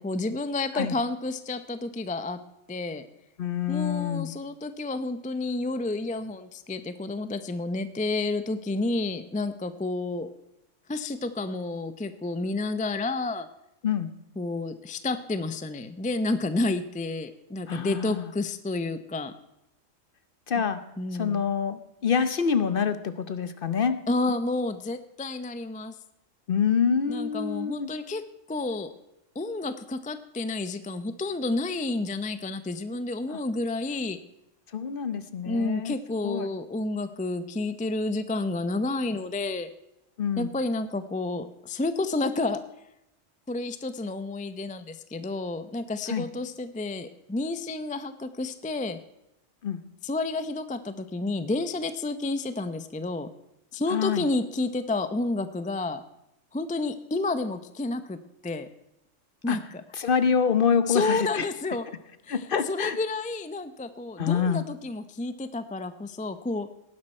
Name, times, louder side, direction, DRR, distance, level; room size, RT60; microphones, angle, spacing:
voice 1, 0.0-2.4 2.7-3.1 3.7-10.3 10.9-13.5 14.4-19.3 21.0-21.4 24.1-25.9 27.1-28.2 28.5-28.9 29.3-34.2 35.5-39.7 40.4-42.6 43.5-49.0 50.0-53.3 53.7-56.0 56.5-58.7 59.4-59.8 60.9-61.9 62.2-66.7, left 2 dB, 10° left, 11 dB, 0.3 m, -30 dB
voice 2, 3.4-4.3 13.8-14.1 17.7-18.3 20.5-20.8 21.2-24.0 26.5-27.9 33.3-33.4 34.7-36.0 36.2-36.5 40.2-40.5 46.1-46.3 49.6-49.8 53.9-54.2 59.5-59.6 60.0-61.5 62.3-63.0 64.2-64.6, left 7 dB, 50° left, 12 dB, 0.9 m, -26 dB
18.5 x 11.0 x 4.3 m, 0.87 s
omnidirectional pair, 1.3 m